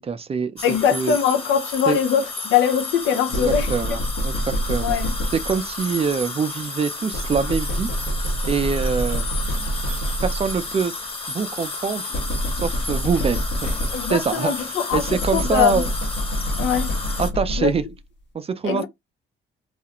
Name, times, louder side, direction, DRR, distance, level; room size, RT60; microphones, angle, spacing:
voice 1, 0.0-0.6 0.9-1.2 1.9-2.0 3.3-5.0 5.3-7.9 8.5-9.3 10.2-10.9 11.3-12.0 12.6-13.7 14.1-14.5 14.9-15.9 17.2-17.8 18.3-18.8, right 5 dB, 30° right, 0.4 m, -24 dB
voice 2, 0.6-4.0 4.8-5.1 13.9-15.0 15.3-15.8 16.6-16.9 17.6-17.7 18.6-18.8, left 8 dB, 80° left, 0.6 m, -22 dB
sound 1, 0.6-17.3, left 3 dB, 30° left, 1.1 m, -32 dB
sound 2, 3.3-5.8 7.1-10.7 12.1-14.3 14.9-18.0, equal, 65° left, 1.0 m, -27 dB
2.4 x 2.1 x 2.8 m
cardioid pair, 90°, 20 cm